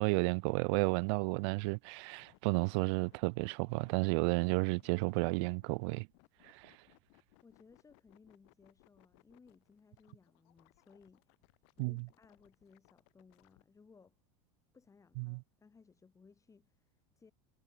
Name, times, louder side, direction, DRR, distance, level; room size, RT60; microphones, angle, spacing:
voice 1, 0.0-6.1 6.4-6.8 11.8-12.1 15.2-15.4, right 32 dB, 60° right, 0.4 m, -32 dB
sound 1, 2.0-13.6, left 35 dB, 65° left, 4.9 m, -67 dB
voice 2, 7.4-11.3 11.8-14.2 14.7-17.3, left 5 dB, 20° left, 3.0 m, -63 dB
hypercardioid pair, 90°, 16 cm